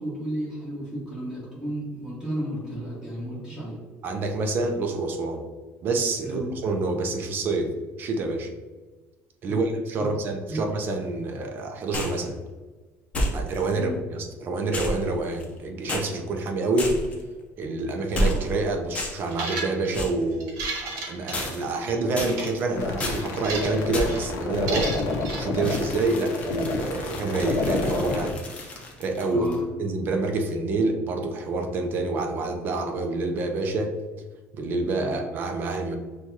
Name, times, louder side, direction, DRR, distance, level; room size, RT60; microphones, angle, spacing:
voice 1, 0.0-3.8 6.2-6.5 9.4-9.7 10.5-10.7 13.7-14.0 29.3-29.7 35.0-35.1, right 1 dB, 10° right, -8 dB, 1.5 m, -33 dB
voice 2, 4.0-5.4 5.8-7.7 8.0-8.5 9.4-12.4 13.3-16.9 17.6-20.5 20.8-24.9 25.4-28.4 29.0-29.5 29.8-33.9 34.5-35.9, right 2 dB, 40° right, 4 dB, 0.5 m, -27 dB
sound 1, 11.9-12.2 13.1-13.7 14.7-15.6 15.9-16.1 16.8-17.2 18.1-18.6 18.9-19.3 19.9-20.2 21.3-21.8 22.2-22.6 23.0-23.3 23.9-24.3 25.6-29.6, equal, 25° left, 0.6 m, -31 dB
sound 2, 19.3-20.0 20.4-21.9 22.2-22.5 23.0-23.8 24.1-24.3 24.7-25.4, right 3 dB, 80° right, 0.9 m, -33 dB
sound 3, 22.7-28.3, left 3 dB, 70° left, 0.5 m, -29 dB
6.2 x 2.3 x 2.8 m, 1.3 s
cardioid pair, 170°, 5 cm